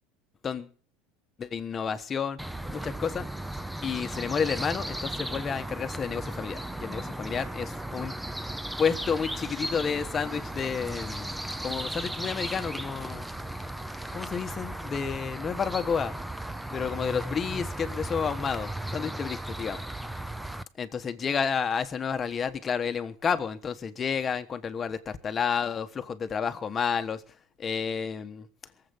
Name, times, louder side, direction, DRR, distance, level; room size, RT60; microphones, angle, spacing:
voice 1, 1.4-2.4 2.7-3.3 3.8-8.2 8.8-11.3 11.6-13.3 14.1-16.1 16.7-19.8 20.8-27.2 27.6-28.5, left 6 dB, 20° left, 1.2 m, -30 dB
sound 1, 2.4-20.6, right 1 dB, 5° right, 0.7 m, -36 dB
22.5 x 7.9 x 7.1 m
supercardioid pair, 150°, 0 cm